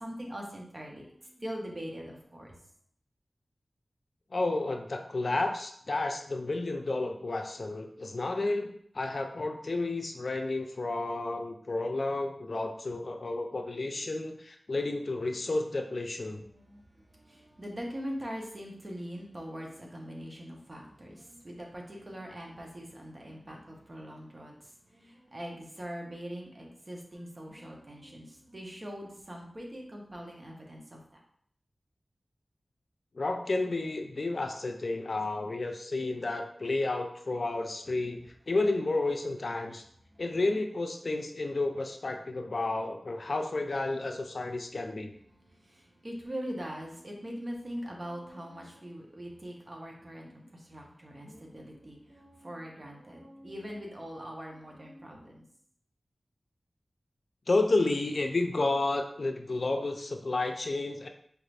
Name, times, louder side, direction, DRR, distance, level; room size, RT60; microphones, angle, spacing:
voice 1, 0.0-2.6 16.3-31.2 40.1-40.2 45.3-55.4, equal, 40° right, -1 dB, 0.9 m, -42 dB
voice 2, 4.3-16.4 33.1-39.8 40.2-45.1 57.5-61.1, left 2 dB, 60° left, 4 dB, 0.4 m, -31 dB
4.6 x 2.5 x 3.3 m, 0.65 s
wide cardioid pair, 90°, 0 cm